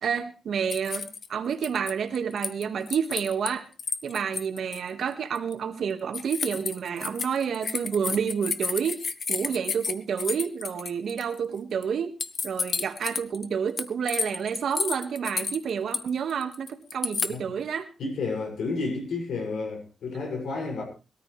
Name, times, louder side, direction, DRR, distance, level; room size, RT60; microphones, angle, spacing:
voice 1, 0.0-3.7 4.0-9.0 9.3-12.1 12.4-17.9, right 7 dB, 75° right, 2.0 m, -29 dB
sound 1, 0.7-1.3 1.6-3.5 3.8-4.8 5.3-5.5 6.1-11.4 11.8-11.9 12.2-13.4 13.8-17.3, left 5 dB, 50° left, 1.1 m, -31 dB
voice 2, 18.0-20.8, left 3 dB, 85° left, 7.1 m, -31 dB
21.5 x 13.5 x 3.4 m
cardioid pair, 115°, 0 cm